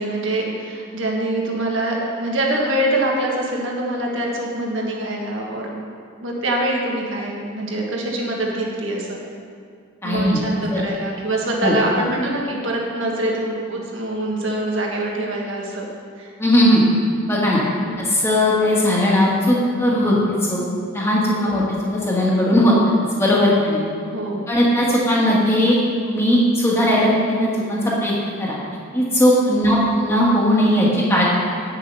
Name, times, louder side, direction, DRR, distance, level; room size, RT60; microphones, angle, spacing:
voice 1, 0.0-5.7 6.2-9.2 10.0-15.8 16.2-16.3 17.8-18.0 21.4-21.6 24.1-24.4 29.6-29.8, right 1 dB, 65° right, -2 dB, 1.6 m, -24 dB
voice 2, 10.0-10.4 10.7-10.8 11.6-11.8 16.4-16.8 17.3-17.6 18.0-20.6 20.9-21.6 22.1-22.7 23.2-23.8 24.5-25.8 26.0-28.6 28.9-31.2, left 1 dB, 10° left, -5 dB, 1.7 m, -18 dB
9.1 x 7.4 x 5.5 m, 2.3 s
head